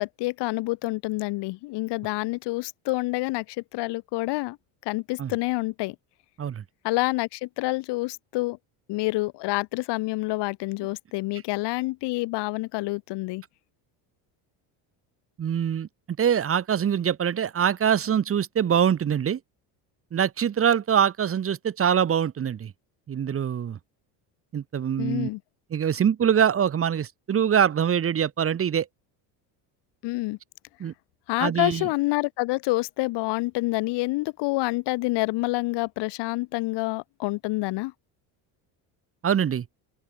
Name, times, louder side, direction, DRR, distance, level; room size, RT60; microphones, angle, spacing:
voice 1, 0.0-4.6 4.8-5.9 6.8-8.6 8.9-13.4 25.0-25.4 30.0-30.4 31.3-37.9, left 21 dB, 70° left, 2.9 m, -27 dB
voice 2, 15.4-15.9 16.2-19.4 20.1-22.7 23.1-23.8 24.5-25.3 25.7-28.9 30.8-30.9 31.4-31.9 39.2-39.7, right 8 dB, 30° right, 1.9 m, -24 dB
open air
cardioid pair, 130°, 43 cm